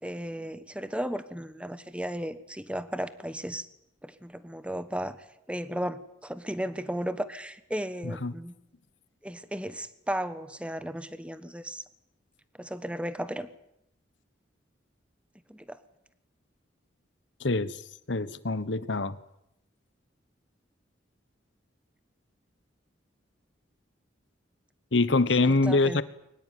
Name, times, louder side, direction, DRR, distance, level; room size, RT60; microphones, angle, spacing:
voice 1, 0.0-3.6 4.0-5.2 5.5-8.5 9.2-11.8 12.6-13.5 15.5-15.8 25.4-26.0, equal, 5° right, 13 dB, 1.3 m, -35 dB
voice 2, 8.0-8.3 17.4-17.8 18.1-19.2 24.9-26.0, left 3 dB, 70° left, 15 dB, 1.2 m, -25 dB
23.0 x 19.5 x 9.4 m, 0.79 s
head